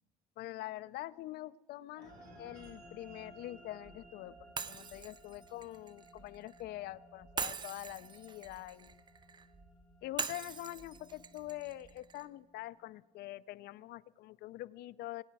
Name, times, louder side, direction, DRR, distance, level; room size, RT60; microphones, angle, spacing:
voice 1, 0.4-9.0 10.0-15.2, left 16 dB, 70° left, 18 dB, 0.4 m, -45 dB
sound 1, 2.0-11.9, right 2 dB, 55° right, 4.0 m, -65 dB
sound 2, 2.0-12.6, right 2 dB, 80° right, 3.2 m, -59 dB
Shatter, 4.6-6.6 7.4-9.5 10.2-12.3, right 5 dB, 25° right, 0.4 m, -42 dB
20.0 x 9.2 x 4.7 m, 1.4 s
cardioid pair, 110°, 17 cm